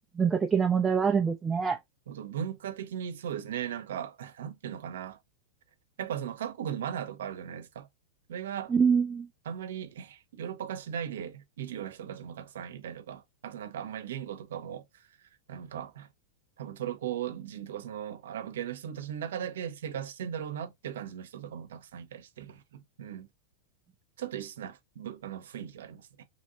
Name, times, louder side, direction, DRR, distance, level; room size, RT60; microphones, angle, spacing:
voice 1, 0.2-1.8 8.7-9.3, right 6 dB, 10° right, 0.3 m, -25 dB
voice 2, 2.1-5.2 6.0-7.9 8.3-8.7 9.4-15.1 15.5-16.1 16.6-23.3 24.2-26.2, right 9 dB, 85° right, 0.7 m, -38 dB
2.8 x 2.7 x 2.8 m
supercardioid pair, 160°, 0 cm